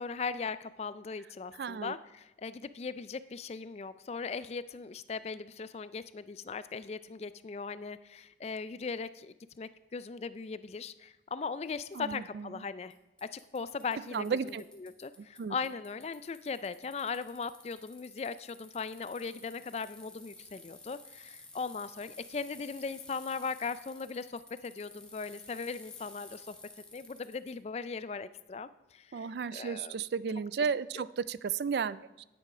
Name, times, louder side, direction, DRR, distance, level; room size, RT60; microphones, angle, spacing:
voice 1, 0.0-12.9 13.2-14.5 14.8-26.5 26.9-30.0 30.6-30.7 31.0-31.1, left 5 dB, 35° left, 15 dB, 0.3 m, -39 dB
voice 2, 1.6-1.9 11.9-12.5 14.1-14.6 15.2-15.5 29.1-32.2, right 6 dB, 65° right, 18 dB, 0.3 m, -34 dB
Bicycle, 11.9-12.0 12.9-13.0 13.2-15.4 15.6-27.5, left 2 dB, 5° left, 1.3 m, -53 dB
9.9 x 9.1 x 4.9 m, 0.98 s
head